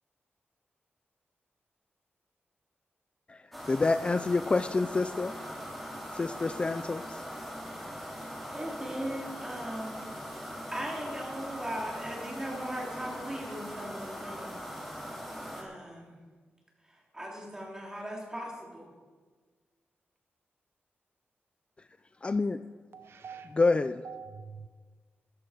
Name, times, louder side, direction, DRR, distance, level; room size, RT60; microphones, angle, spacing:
voice 1, 3.3-5.5 6.1-7.2 22.2-22.6 23.5-24.0, left 3 dB, 25° left, 12 dB, 0.3 m, -28 dB
sound 1, 3.5-15.6, equal, ahead, 2.6 m, -41 dB
voice 2, 8.5-9.9 10.3-14.7 15.5-16.2 17.1-18.9, right 1 dB, 15° right, -1 dB, 3.1 m, -39 dB
voice 3, 22.9-23.5 24.0-24.7, right 6 dB, 65° right, 10 dB, 0.6 m, -45 dB
14.0 x 11.0 x 5.0 m, 1.5 s
wide cardioid pair, 135°, 4 cm